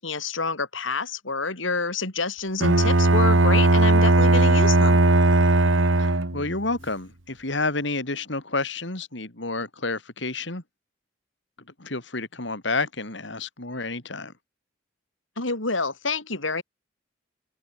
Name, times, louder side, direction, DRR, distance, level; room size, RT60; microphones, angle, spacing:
voice 1, 0.0-5.0 15.4-16.6, left 4 dB, 85° left, 4.8 m, -28 dB
Bowed string instrument, 2.6-6.6, right 2 dB, 85° right, 1.9 m, -18 dB
voice 2, 6.0-10.6 11.8-14.3, left 3 dB, 65° left, 3.5 m, -30 dB
open air
head